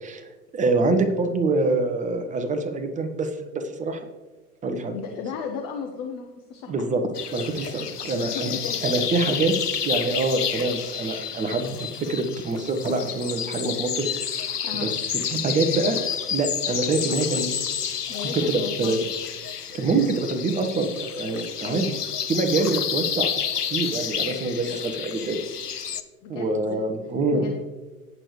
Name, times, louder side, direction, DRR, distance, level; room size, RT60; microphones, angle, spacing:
voice 1, 0.0-4.0 4.6-5.0 6.7-7.0 7.3-8.5 8.8-9.5 9.8-14.1 14.8-14.9 15.3-16.0 16.3-17.5 18.3-19.0 19.7-21.8 22.3-23.3 23.7-25.4 26.3-27.4, right 3 dB, 15° right, 6 dB, 1.2 m, -25 dB
voice 2, 4.9-6.9 8.0-8.8 14.6-14.9 18.1-18.9 21.7-22.0 26.2-26.8 27.3-27.5, left 6 dB, 10° left, 3 dB, 0.3 m, -34 dB
sound 1, 7.1-26.0, left 8 dB, 80° left, 0.8 m, -30 dB
18.0 x 6.8 x 3.2 m, 1.2 s
figure-of-eight pair, 90°, 46 cm